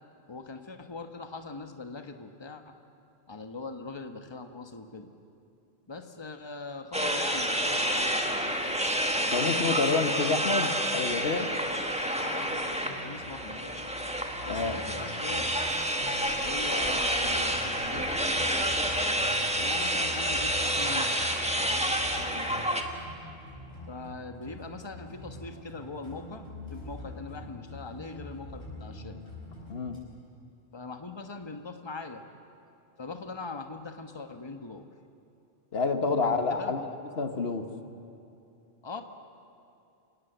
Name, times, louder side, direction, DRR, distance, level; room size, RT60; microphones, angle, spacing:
voice 1, 0.3-2.8 3.3-5.1 5.9-8.8 9.1-9.8 12.2-13.8 14.5-15.5 16.4-18.7 19.6-21.2 21.5-22.8 23.9-29.2 30.7-32.2 33.0-34.9 36.2-36.7 38.8-39.0, left 3 dB, 25° left, 7 dB, 1.3 m, -41 dB
sound 1, 6.9-22.8, right 1 dB, 5° right, 1.6 m, -29 dB
voice 2, 9.3-11.5 14.5-14.8 29.7-30.0 35.7-36.9 37.2-37.6, left 4 dB, 65° left, 7 dB, 1.7 m, -28 dB
sound 2, 12.8-30.0, left 1 dB, 90° left, 8.4 m, -44 dB
28.5 x 18.5 x 8.0 m, 2.7 s
omnidirectional pair, 1.1 m